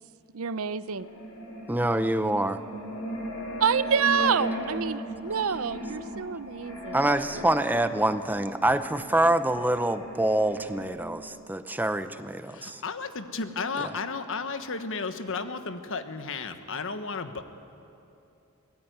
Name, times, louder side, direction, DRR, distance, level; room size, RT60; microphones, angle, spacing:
voice 1, 0.3-1.1 3.6-7.0 7.3-7.4, right 6 dB, 70° right, 15 dB, 0.7 m, -27 dB
sound 1, 0.9-10.9, equal, 80° left, 5.9 m, -37 dB
voice 2, 1.7-2.6 6.9-12.8, right 1 dB, 10° right, 11 dB, 0.6 m, -26 dB
voice 3, 12.5-17.4, left 4 dB, 65° left, 9 dB, 1.3 m, -33 dB
24.0 x 19.5 x 9.4 m, 2.8 s
head